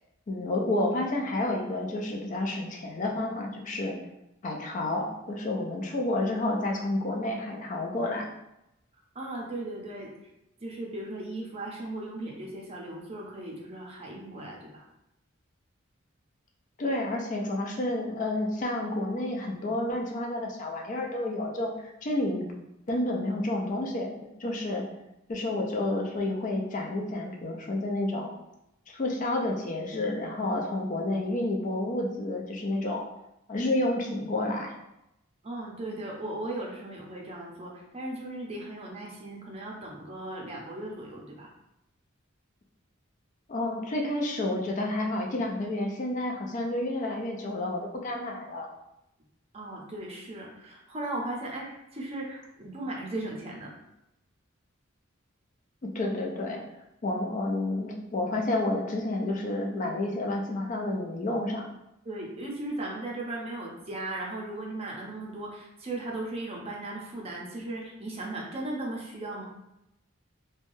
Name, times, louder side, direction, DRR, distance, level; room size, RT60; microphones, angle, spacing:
voice 1, 0.3-3.9 4.4-8.3 16.8-22.4 22.9-24.1 24.4-24.8 25.3-28.3 28.9-33.0 33.5-34.7 43.5-48.7 55.8-56.6 57.0-61.6, left 1 dB, 40° left, 0 dB, 0.4 m, -30 dB
voice 2, 9.1-10.1 10.6-14.9 35.4-41.5 49.5-53.7 62.0-69.4, right 2 dB, 30° right, -2 dB, 0.5 m, -37 dB
3.1 x 2.2 x 2.6 m, 0.87 s
head